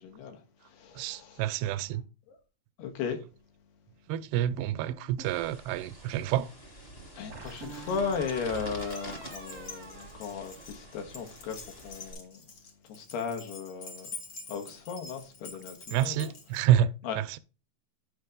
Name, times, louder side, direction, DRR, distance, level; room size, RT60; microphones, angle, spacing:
voice 1, 0.0-0.4 0.7-1.4 2.8-3.2 7.2-11.6 11.8-12.4 12.9-14.1 14.5-16.3 17.0-17.2, left 6 dB, 80° left, 3.4 m, -36 dB
voice 2, 1.0-2.0 4.1-6.5 15.9-17.4, right 11 dB, 90° right, 2.6 m, -28 dB
sound 1, 4.6-5.4 7.3-10.9, right 4 dB, 70° right, 0.8 m, -45 dB
sound 2, 5.2-12.1, right 1 dB, 40° left, 0.8 m, -48 dB
Keys jangling, 7.5-16.7, left 4 dB, 60° left, 1.3 m, -47 dB
9.6 x 5.7 x 3.7 m
omnidirectional pair, 4.6 m